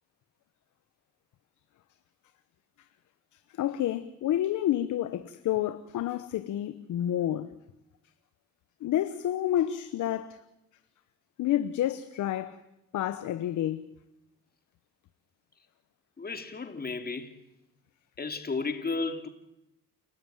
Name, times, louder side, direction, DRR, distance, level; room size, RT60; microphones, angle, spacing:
voice 1, 3.6-7.5 8.8-10.4 11.4-12.6 12.9-13.9, left 12 dB, 75° left, 1.1 m, -29 dB
voice 2, 16.2-17.3 18.2-19.3, left 4 dB, 30° left, 2.9 m, -33 dB
29.5 x 13.0 x 9.2 m
cardioid pair, 90°, 30 cm